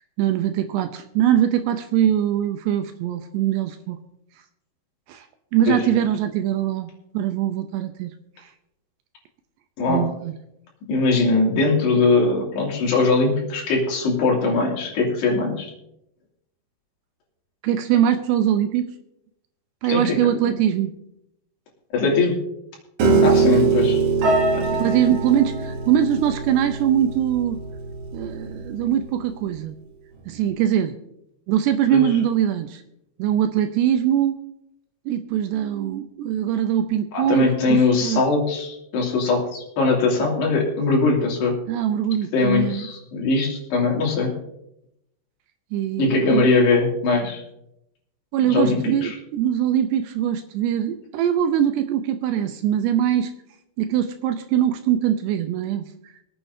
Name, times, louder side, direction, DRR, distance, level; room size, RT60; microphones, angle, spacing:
voice 1, 0.2-4.0 5.1-5.3 5.5-8.1 9.9-10.3 17.6-18.9 19.8-20.9 23.0-23.3 24.8-27.6 28.1-29.7 30.3-31.0 31.5-32.8 33.2-34.4 35.1-38.2 41.7-42.9 45.7-46.5 48.3-53.3 53.8-55.9, right 10 dB, 80° right, 8 dB, 2.5 m, -22 dB
voice 2, 10.9-15.7 19.9-20.2 21.9-22.3 23.2-24.0 24.5-24.8 31.9-32.0 37.1-41.6 42.3-44.3 46.0-47.4 48.5-49.1, left 3 dB, 65° left, -2 dB, 4.7 m, -21 dB
Piano, 23.0-29.2, right 4 dB, 65° right, 4.3 m, -22 dB
25.0 x 9.0 x 2.7 m, 0.80 s
omnidirectional pair, 5.5 m